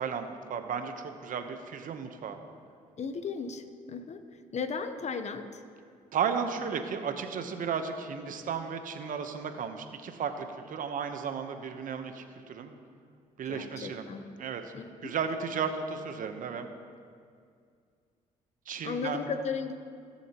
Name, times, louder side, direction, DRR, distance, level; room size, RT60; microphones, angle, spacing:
voice 1, 0.0-2.4 6.1-12.7 13.4-14.1 14.4-14.6 15.0-16.7 18.7-19.3, right 6 dB, 60° right, 7 dB, 1.0 m, -34 dB
voice 2, 3.0-4.2 4.5-5.6 13.5-14.2 14.7-15.1 18.8-19.7, left 5 dB, 50° left, 9 dB, 0.9 m, -35 dB
17.5 x 7.0 x 3.0 m, 2.2 s
supercardioid pair, 60°, 15 cm